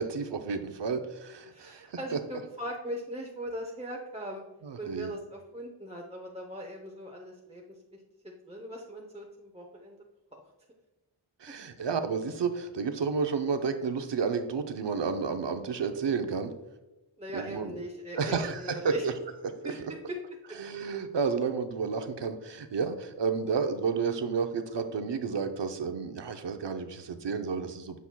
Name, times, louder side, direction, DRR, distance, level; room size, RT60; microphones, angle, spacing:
voice 1, 0.0-2.0 4.6-5.1 11.4-16.5 17.3-17.7 18.2-19.1 20.6-28.0, right 5 dB, 60° right, 8 dB, 0.7 m, -31 dB
voice 2, 1.5-4.4 4.8-7.6 7.9-10.0 17.2-19.1 19.6-19.8 20.1-20.2 20.5-20.6, equal, 15° right, 0 dB, 0.7 m, -40 dB
8.3 x 5.5 x 2.2 m, 1.0 s
wide cardioid pair, 50°, 47 cm